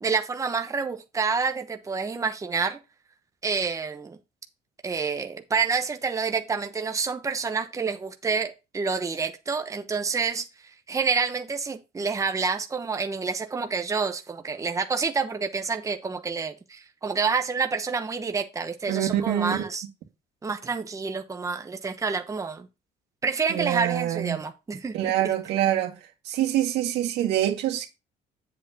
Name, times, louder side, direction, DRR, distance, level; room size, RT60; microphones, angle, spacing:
voice 1, 0.0-2.8 3.4-4.2 4.8-10.4 10.9-19.8 20.4-22.7 23.2-25.1, right 5 dB, 20° right, 0.9 m, -28 dB
voice 2, 18.9-19.7 23.5-24.4 24.9-26.0 26.2-27.9, right 12 dB, 85° right, 1.9 m, -25 dB
8.1 x 7.5 x 2.8 m
cardioid pair, 110°, 17 cm